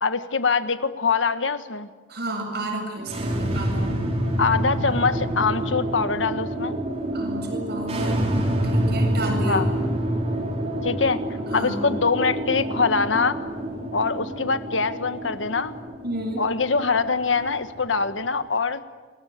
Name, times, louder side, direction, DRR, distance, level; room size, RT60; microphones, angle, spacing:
voice 1, 0.0-1.9 4.4-6.8 9.5-9.6 10.8-11.2 11.5-13.4 13.9-15.7 16.4-18.8, left 4 dB, 85° left, 11 dB, 1.5 m, -23 dB
voice 2, 2.1-4.0 7.1-8.2 8.6-9.7 11.5-11.8 16.0-16.4, right 1 dB, 60° right, 3 dB, 8.0 m, -31 dB
sound 1, 3.0-18.2, right 1 dB, 35° right, 5.3 m, -27 dB
28.5 x 21.5 x 8.8 m, 1.4 s
head